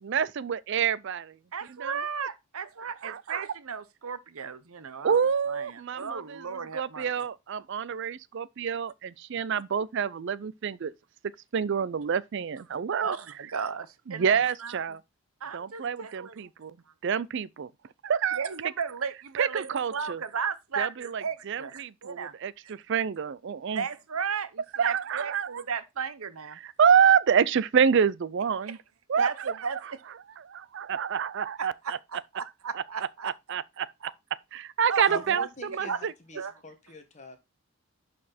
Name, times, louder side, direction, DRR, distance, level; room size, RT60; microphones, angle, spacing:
voice 1, 0.0-1.4 1.8-2.0 3.0-3.4 5.0-6.4 6.7-10.9 11.5-13.1 14.1-15.0 15.5-16.8 17.0-17.7 18.0-18.4 19.4-20.2 20.8-23.8 24.8-25.5 26.6-28.8 29.1-29.3 30.4-32.0 32.7-33.9 34.5-36.1, right 7 dB, 55° right, 0.4 m, -27 dB
voice 2, 1.5-5.2 5.5-7.1 13.0-15.0 15.4-16.5 18.4-22.3 22.6-22.7 23.7-26.6 28.6-28.8 29.1-30.0 31.6-33.3 34.0-34.1 34.9-35.5 35.9-36.0 36.3-36.5, right 6 dB, 75° right, 0.9 m, -35 dB
voice 3, 35.1-37.4, left 3 dB, 35° left, 1.6 m, -44 dB
11.0 x 4.3 x 4.2 m
head